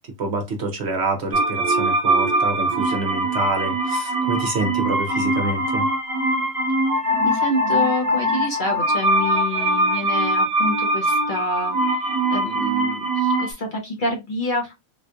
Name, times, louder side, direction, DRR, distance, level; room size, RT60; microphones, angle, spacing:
voice 1, 0.2-5.9, right 3 dB, 60° right, 3 dB, 0.8 m, -27 dB
sound 1, 1.3-13.5, right 1 dB, 30° right, 1.1 m, -22 dB
voice 2, 7.2-14.7, left 1 dB, 40° left, 0 dB, 0.9 m, -28 dB
3.6 x 2.4 x 2.5 m, 0.22 s
omnidirectional pair, 1.4 m